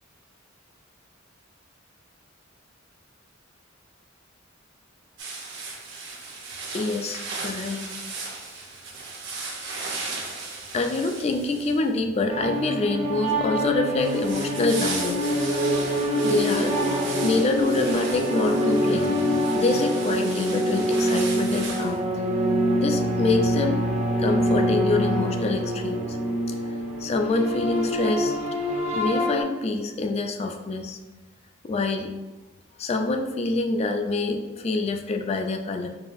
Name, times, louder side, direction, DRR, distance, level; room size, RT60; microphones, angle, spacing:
sound 1, 5.2-12.0 14.0-22.0, right 3 dB, 60° right, 0.8 m, -36 dB
voice 1, 6.7-7.9 10.7-15.6 16.2-16.7 17.2-19.2 19.5-22.0 22.8-23.8 24.2-26.2 26.5-26.6 27.0-28.4 28.9-31.0 31.6-32.1 32.8-35.9, left 3 dB, 30° left, 5 dB, 0.3 m, -26 dB
sound 2, 12.3-29.4, equal, 30° right, 0.5 m, -25 dB
4.8 x 2.4 x 2.5 m, 1.1 s
head